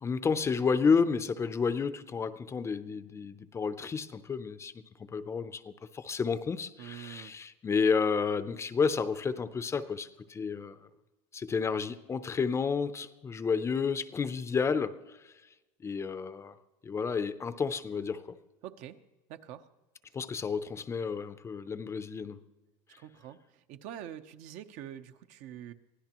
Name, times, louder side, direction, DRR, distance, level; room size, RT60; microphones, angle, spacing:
voice 1, 0.0-10.7 11.3-15.3 15.8-16.5 16.8-18.4 20.1-22.4, left 5 dB, 20° left, 0.6 m, -31 dB
voice 2, 6.8-7.3 18.6-19.0 19.3-19.7 23.0-25.7, right 10 dB, 55° right, 0.9 m, -45 dB
24.0 x 16.0 x 3.0 m
cardioid pair, 145°, 15 cm